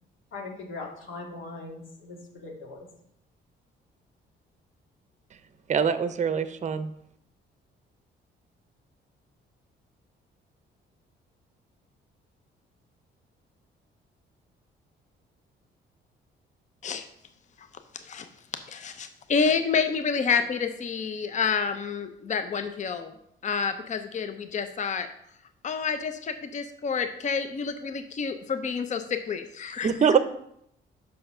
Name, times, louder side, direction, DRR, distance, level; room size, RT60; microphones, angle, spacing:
voice 1, 0.3-2.9, left 3 dB, 80° left, 0 dB, 2.0 m, -40 dB
voice 2, 5.7-6.9 29.8-30.2, right 7 dB, 35° right, 12 dB, 0.6 m, -23 dB
voice 3, 18.7-23.1 23.4-25.1 25.6-29.9, left 6 dB, 40° left, 9 dB, 0.6 m, -28 dB
5.6 x 5.5 x 5.5 m, 0.74 s
cardioid pair, 90°, 20 cm